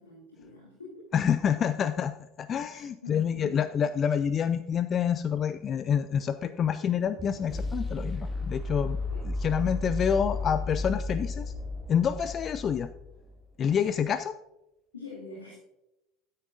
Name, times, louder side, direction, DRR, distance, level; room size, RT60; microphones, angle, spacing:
voice 1, 0.0-1.2 2.7-3.6 9.1-9.2 14.9-15.5, left 3 dB, 80° left, -3 dB, 2.1 m, -44 dB
voice 2, 1.1-2.1 2.4-9.0 9.2-11.5 11.9-12.9 13.6-14.4, left 8 dB, 35° left, 12 dB, 0.4 m, -27 dB
sound 1, 5.4-13.4, left 2 dB, ahead, 2.3 m, -34 dB
13.0 x 9.6 x 2.6 m, 0.92 s
figure-of-eight pair, 70°, 0 cm